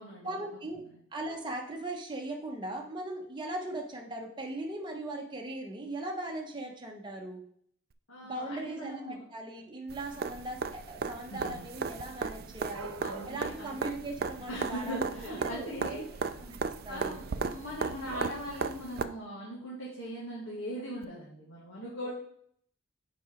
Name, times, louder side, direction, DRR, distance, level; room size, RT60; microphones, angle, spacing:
voice 1, 0.2-0.8 1.1-7.4 8.2-12.9 13.3-15.0 15.3-16.0 16.4-16.6 16.8-17.2 22.0-22.1, right 1 dB, 20° right, 1 dB, 1.1 m, -39 dB
voice 2, 8.1-9.2 11.3-11.7 13.0-13.9 14.5-16.3 16.9-22.1, equal, 70° left, -6 dB, 2.0 m, -40 dB
sound 1, 9.9-19.0 21.0-21.1, right 5 dB, 45° right, 0.4 m, -36 dB
Dog / Cat, 11.3-18.3, right 3 dB, 90° right, 0.8 m, -49 dB
5.9 x 5.1 x 5.1 m, 0.65 s
head